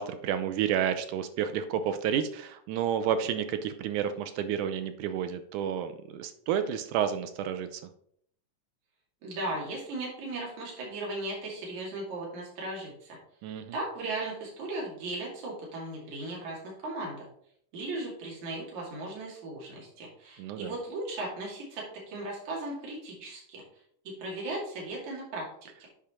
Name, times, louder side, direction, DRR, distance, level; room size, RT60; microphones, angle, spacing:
voice 1, 0.0-7.8 13.4-13.7 20.4-20.7, right 9 dB, 80° right, 9 dB, 1.9 m, -30 dB
voice 2, 9.2-13.2 13.7-17.2 17.7-23.6 24.1-25.5, right 2 dB, 60° right, -3 dB, 3.6 m, -37 dB
8.7 x 4.9 x 4.3 m, 0.67 s
omnidirectional pair, 3.8 m